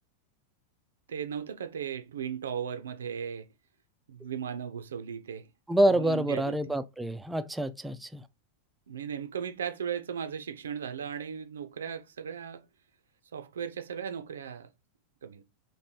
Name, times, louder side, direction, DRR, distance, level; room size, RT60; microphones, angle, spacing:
voice 1, 1.1-3.5 4.1-5.5 5.9-6.6 8.9-12.7 13.3-14.7 15.2-15.4, right 7 dB, 65° right, 0.5 m, -36 dB
voice 2, 5.7-8.2, right 1 dB, 5° right, 0.4 m, -27 dB
3.2 x 3.1 x 4.2 m
figure-of-eight pair, 90°, 0 cm